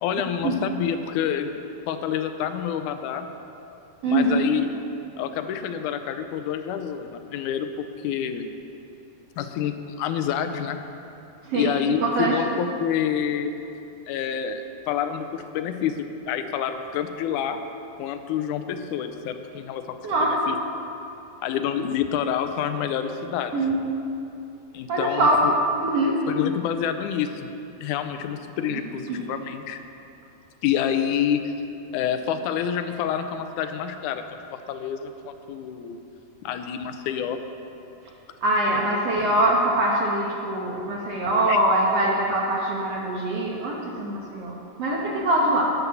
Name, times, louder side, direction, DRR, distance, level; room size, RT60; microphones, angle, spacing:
voice 1, 0.0-1.5 1.9-3.3 4.0-4.7 5.2-8.4 9.4-10.8 11.5-13.5 14.1-17.6 18.0-20.0 20.5-20.6 21.4-23.6 24.7-25.5 26.3-27.5 27.8-29.8 30.6-31.5 31.9-34.2 34.5-36.0 36.4-37.4 38.7-38.9 41.5-41.6, left 8 dB, 80° left, 7 dB, 1.9 m, -28 dB
voice 2, 4.0-4.4 11.4-12.3 20.0-20.5 23.5-23.8 24.9-25.4 25.8-26.1 28.7-28.8 29.1-29.2 38.4-45.6, right 1 dB, 55° right, -3 dB, 1.9 m, -23 dB
11.0 x 9.6 x 7.0 m, 2.8 s
omnidirectional pair, 4.1 m